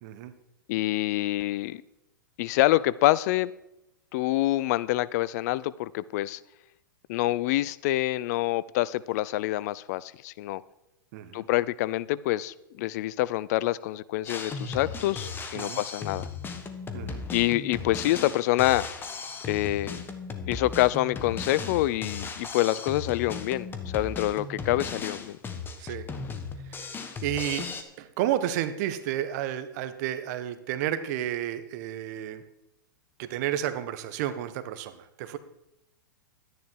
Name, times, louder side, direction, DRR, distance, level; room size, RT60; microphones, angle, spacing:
voice 1, 0.0-0.3 11.1-11.5 15.5-15.8 16.9-17.2 25.8-26.1 26.6-26.8 27.2-27.7 28.0-32.4 33.2-35.4, right 11 dB, 50° right, 12 dB, 1.2 m, -31 dB
voice 2, 0.7-1.8 2.4-3.5 4.1-6.4 7.1-10.6 11.3-16.3 17.3-18.9 19.5-20.0 20.5-25.4, left 16 dB, 50° left, 19 dB, 0.5 m, -26 dB
Drum kit, 14.3-27.8, left 5 dB, 20° left, 1.5 m, -36 dB
12.0 x 10.5 x 4.6 m, 0.88 s
hypercardioid pair, 115°, 11 cm